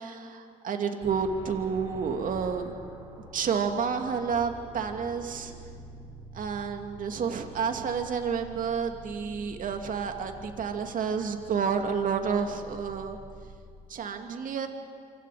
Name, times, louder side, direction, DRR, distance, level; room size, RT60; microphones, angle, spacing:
voice 1, 0.0-2.8 3.3-5.5 6.3-13.2 13.9-14.7, right 6 dB, 55° right, 5 dB, 2.5 m, -30 dB
sound 1, 1.0-13.6, right 3 dB, 25° right, 6.3 m, -47 dB
27.5 x 25.5 x 5.1 m, 2.2 s
supercardioid pair, 65°, 17 cm